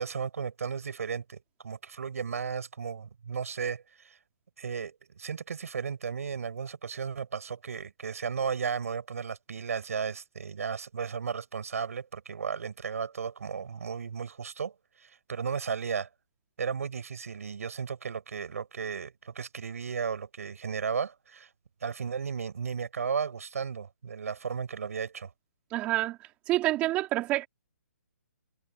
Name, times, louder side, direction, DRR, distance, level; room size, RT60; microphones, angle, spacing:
voice 1, 0.0-1.4 1.6-4.2 4.6-16.1 16.6-21.5 21.8-25.3, right 6 dB, 60° right, 6.9 m, -34 dB
voice 2, 25.7-26.2 26.5-27.5, right 16 dB, 15° right, 4.7 m, -27 dB
hypercardioid pair, 170°, 9 cm